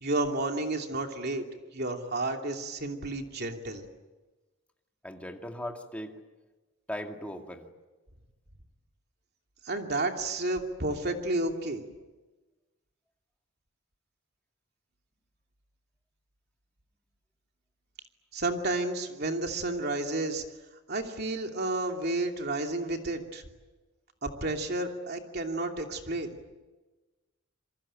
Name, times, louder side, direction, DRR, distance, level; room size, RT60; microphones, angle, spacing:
voice 1, 0.0-1.4 1.7-3.8 9.6-11.8 18.3-20.4 20.9-23.4 24.2-26.3, right 2 dB, 50° right, 3 dB, 2.8 m, -31 dB
voice 2, 5.0-6.1 6.9-7.7, left 1 dB, 5° left, 3 dB, 2.3 m, -38 dB
27.5 x 23.5 x 9.0 m, 1.2 s
head